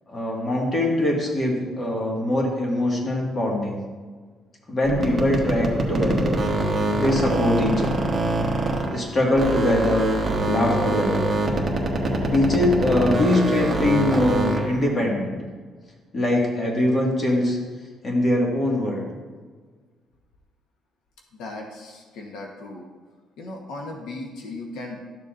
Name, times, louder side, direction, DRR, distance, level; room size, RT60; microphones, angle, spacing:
voice 1, 0.1-3.8 4.7-6.4 6.9-8.1 8.9-10.1 10.4-11.3 12.2-15.4 16.1-17.6 18.0-19.0, left 1 dB, 30° left, -1 dB, 1.8 m, -22 dB
sound 1, 4.8-9.1 9.3-14.8, right 1 dB, 20° right, 1.3 m, -24 dB
Alarm, 8.8-9.3 9.8-10.3 10.8-11.3 11.8-12.3 12.8-13.3, right 4 dB, 45° right, 1.9 m, -53 dB
voice 2, 21.3-22.8 23.4-25.0, left 2 dB, 85° left, 1 dB, 1.1 m, -37 dB
12.5 x 6.9 x 2.6 m, 1.5 s
cardioid pair, 130°, 0 cm